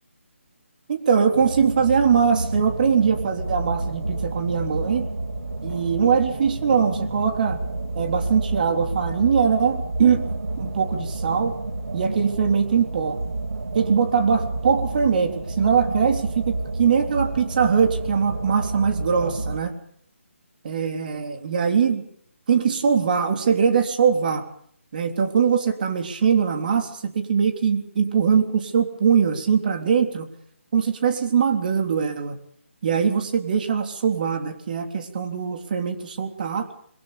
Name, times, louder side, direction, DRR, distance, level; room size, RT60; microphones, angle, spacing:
voice 1, 0.9-5.1 5.6-7.6 8.0-11.6 11.9-13.2 13.7-19.7 20.6-22.0 22.5-24.4 24.9-30.3 30.7-32.4 32.8-36.7, right 6 dB, 40° right, 6 dB, 3.5 m, -22 dB
sound 1, 1.3-19.6, right 2 dB, 85° right, 3.2 m, -30 dB
27.0 x 23.0 x 5.3 m, 0.63 s
figure-of-eight pair, 160°, 7 cm